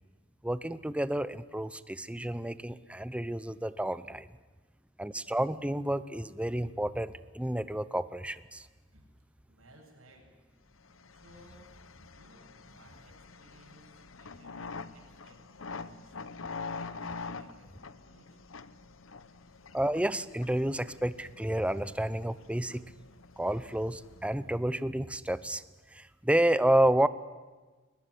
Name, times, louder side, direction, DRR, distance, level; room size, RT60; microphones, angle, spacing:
voice 1, 0.4-4.3 5.0-8.7 19.7-22.8 23.4-25.6 25.9-27.1, right 1 dB, 5° right, 15 dB, 0.7 m, -30 dB
voice 2, 9.5-10.2 11.1-11.6 12.1-18.4, right 1 dB, 85° right, 0 dB, 7.8 m, -59 dB
sound 1, 10.8-24.7, left 4 dB, 70° left, 0.9 m, -46 dB
22.0 x 20.5 x 10.0 m, 1.3 s
head